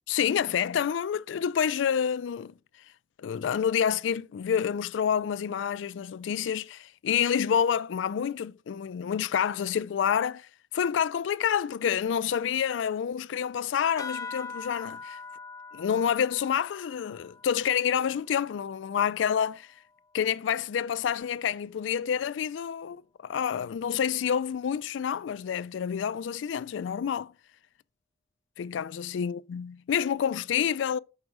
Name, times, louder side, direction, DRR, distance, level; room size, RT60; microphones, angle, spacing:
voice 1, 0.0-2.5 3.2-10.5 10.7-15.2 15.7-19.7 20.1-27.3 28.6-31.0, left 8 dB, 80° left, 0.3 m, -28 dB
sound 1, 14.0-18.9, left 4 dB, 20° left, 0.5 m, -43 dB
6.3 x 4.8 x 6.0 m
head